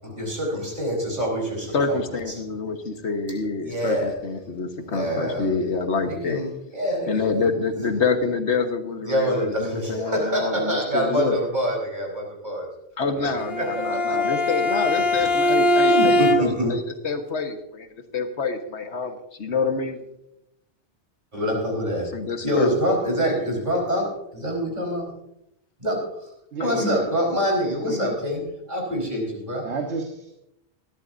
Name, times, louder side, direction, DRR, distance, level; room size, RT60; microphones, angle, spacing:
voice 1, 0.0-2.3 3.6-4.2 4.8-5.5 6.1-7.5 9.0-12.7 13.1-14.4 15.2-15.4 15.8-16.7 21.3-22.1 22.4-25.1 25.8-26.3 26.6-29.7, equal, 40° right, 0 dB, 4.8 m, -26 dB
voice 2, 1.7-6.4 7.1-11.4 13.0-17.9 18.1-20.0 22.1-22.7 26.6-27.0, left 4 dB, 75° left, 6 dB, 1.7 m, -27 dB
Bowed string instrument, 13.4-16.8, left 1 dB, 55° left, 1.4 m, -21 dB
voice 3, 26.5-27.0 27.8-28.1 29.6-30.3, right 3 dB, 75° right, 3 dB, 1.6 m, -30 dB
20.0 x 13.5 x 2.7 m, 0.81 s
omnidirectional pair, 1.2 m